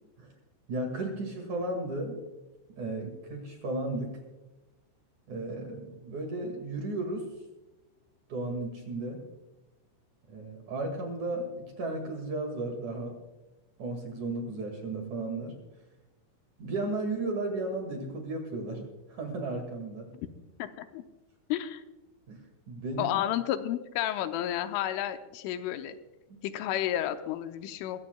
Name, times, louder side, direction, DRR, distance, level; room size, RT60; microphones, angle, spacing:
voice 1, 0.7-2.2 2.8-4.2 5.3-7.3 8.3-9.2 10.3-13.2 13.8-15.5 16.6-20.1 22.3-22.4 22.7-23.2, right 2 dB, 50° right, 3 dB, 2.8 m, -34 dB
voice 2, 20.6-21.0 21.5-21.8 23.0-26.0 26.4-28.0, left 12 dB, 85° left, 8 dB, 3.3 m, -31 dB
23.0 x 16.0 x 2.3 m, 1.0 s
omnidirectional pair, 5.5 m